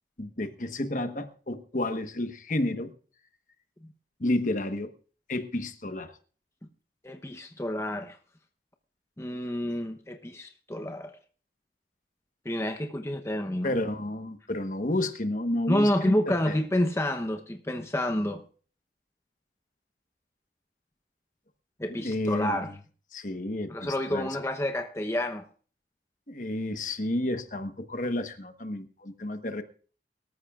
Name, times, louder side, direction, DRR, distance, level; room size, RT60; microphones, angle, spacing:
voice 1, 0.2-2.9 4.2-4.9 5.3-6.1 13.6-16.2 16.4-16.5 22.0-22.6 23.1-24.3 26.3-29.6, left 1 dB, 45° left, 1.2 m, -31 dB
voice 2, 7.0-8.2 9.2-11.2 12.4-13.8 15.7-18.4 21.8-22.7 23.7-25.4, left 1 dB, 15° left, 0.8 m, -29 dB
23.5 x 13.5 x 2.4 m
head